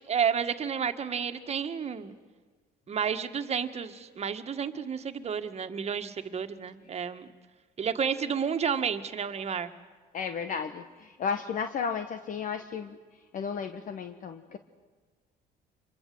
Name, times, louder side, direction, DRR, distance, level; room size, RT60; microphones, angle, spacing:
voice 1, 0.0-2.1 2.9-7.3 7.8-9.7, right 7 dB, 40° right, 8 dB, 1.8 m, -31 dB
voice 2, 10.1-13.0 13.3-14.6, left 6 dB, 50° left, 9 dB, 1.3 m, -33 dB
26.0 x 22.5 x 7.9 m, 1.4 s
cardioid pair, 110°, 17 cm